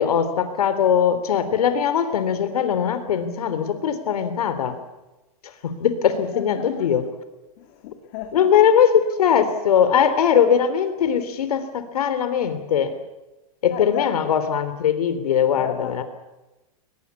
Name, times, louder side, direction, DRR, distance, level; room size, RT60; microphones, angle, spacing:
voice 1, 0.0-4.8 5.4-7.0 8.3-12.9 13.6-16.0, left 8 dB, 80° left, 11 dB, 3.5 m, -20 dB
voice 2, 6.1-6.9 7.6-8.5 13.7-14.2 15.5-16.0, left 10 dB, 40° left, 3 dB, 2.6 m, -35 dB
23.0 x 20.5 x 8.4 m, 1.1 s
supercardioid pair, 170°, 19 cm